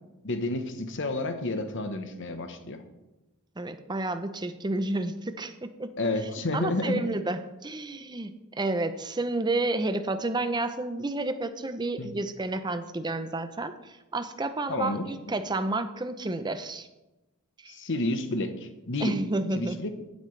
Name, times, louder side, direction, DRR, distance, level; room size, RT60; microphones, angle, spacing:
voice 1, 0.2-2.8 6.0-7.1 12.0-12.1 14.7-15.1 17.7-19.2 19.6-20.0, left 2 dB, 55° left, 8 dB, 1.0 m, -30 dB
voice 2, 3.6-5.5 5.8-5.9 6.5-16.9 17.6-17.7 19.0-19.8, right 2 dB, 20° right, 9 dB, 0.6 m, -30 dB
16.0 x 8.4 x 3.3 m, 1.0 s
head